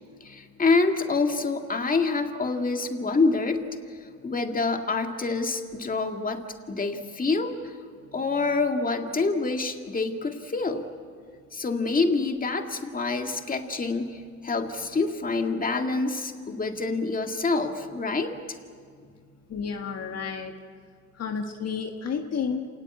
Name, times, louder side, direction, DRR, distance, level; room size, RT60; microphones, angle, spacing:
voice 1, 0.2-3.6 4.2-7.7 8.1-10.9 11.5-18.4, left 3 dB, 30° left, 5 dB, 2.1 m, -26 dB
voice 2, 19.5-20.6 21.1-22.7, left 6 dB, 55° left, 4 dB, 1.7 m, -31 dB
28.0 x 19.0 x 8.4 m, 2.1 s
cardioid pair, 90°, 30 cm